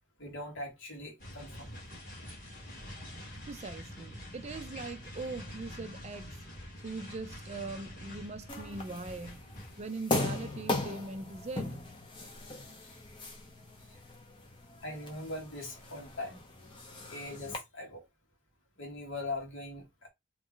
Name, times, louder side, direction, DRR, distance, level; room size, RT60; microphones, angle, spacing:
voice 1, 0.2-1.8 13.9-14.0 14.8-16.4 17.1-18.0 18.8-20.1, left 2 dB, 65° left, 1.5 m, -41 dB
sound 1, 1.2-9.8, left 1 dB, 40° left, 1.6 m, -46 dB
voice 2, 3.5-6.4 6.8-9.4 9.8-11.8, right 3 dB, 30° right, 0.4 m, -41 dB
sound 2, 8.5-17.6, left 2 dB, 25° left, 0.7 m, -39 dB
3.0 x 2.3 x 3.7 m
head